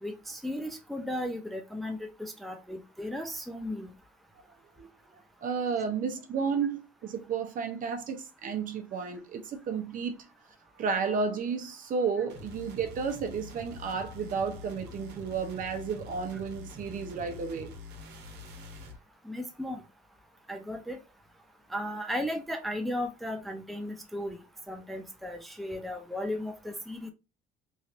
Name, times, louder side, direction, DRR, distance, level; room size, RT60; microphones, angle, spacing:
voice 1, 0.0-3.9 19.2-19.8 20.5-21.0 21.7-24.4 24.7-27.1, left 1 dB, ahead, 0.5 m, -35 dB
voice 2, 5.4-10.2 10.8-17.7, right 5 dB, 55° right, 0.7 m, -32 dB
sound 1, 12.3-19.0, left 3 dB, 80° right, 1.0 m, -45 dB
3.2 x 2.6 x 2.6 m
cardioid pair, 110°, 17 cm